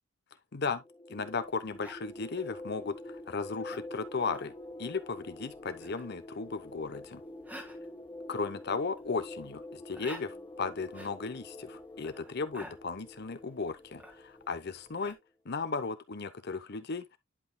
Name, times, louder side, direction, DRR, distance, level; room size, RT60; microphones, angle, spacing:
voice 1, 0.5-0.8 1.1-4.5 4.8-7.2 8.3-15.2 15.4-17.2, left 4 dB, 50° left, 0.8 m, -36 dB
sound 1, 0.8-15.1, left 1 dB, 20° left, 0.8 m, -47 dB
sound 2, 1.2-15.1, equal, 5° right, 1.5 m, -54 dB
11.0 x 5.4 x 2.2 m
head